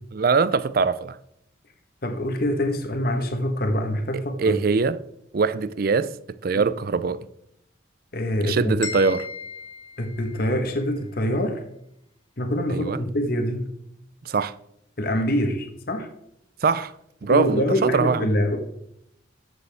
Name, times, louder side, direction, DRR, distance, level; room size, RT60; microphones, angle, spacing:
voice 1, 0.1-1.2 4.4-5.0 5.3-6.1 6.4-7.3 8.4-9.3 12.7-13.0 14.3-14.5 16.6-16.9 17.2-18.3, right 4 dB, 50° right, 0.4 m, -22 dB
voice 2, 2.0-4.5 8.1-8.7 10.0-11.6 12.4-13.7 15.0-16.1 17.3-18.6, equal, 50° left, 1.2 m, -25 dB
sound 1, 8.8-10.8, left 6 dB, 75° left, 1.8 m, -37 dB
13.5 x 6.8 x 3.5 m
head